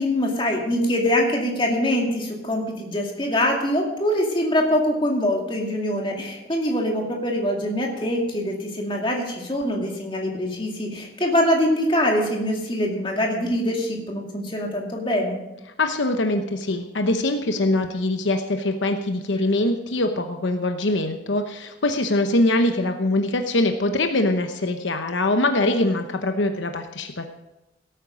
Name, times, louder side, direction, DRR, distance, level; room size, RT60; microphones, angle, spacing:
voice 1, 0.0-15.4, left 1 dB, 25° left, 0 dB, 2.3 m, -24 dB
voice 2, 15.8-27.3, left 2 dB, 80° left, 6 dB, 0.9 m, -23 dB
17.0 x 9.0 x 5.1 m, 0.95 s
head